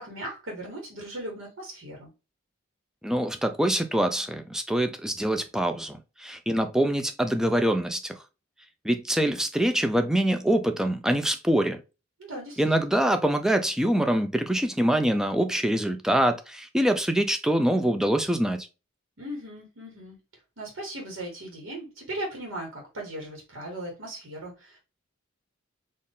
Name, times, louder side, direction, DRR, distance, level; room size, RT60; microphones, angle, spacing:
voice 1, 0.0-2.1 12.2-12.9 19.2-20.2 20.6-24.8, right 1 dB, 75° right, 1.2 m, -38 dB
voice 2, 3.0-8.2 8.8-11.8 12.6-18.7, right 1 dB, 5° right, 0.3 m, -24 dB
4.2 x 2.4 x 3.5 m
head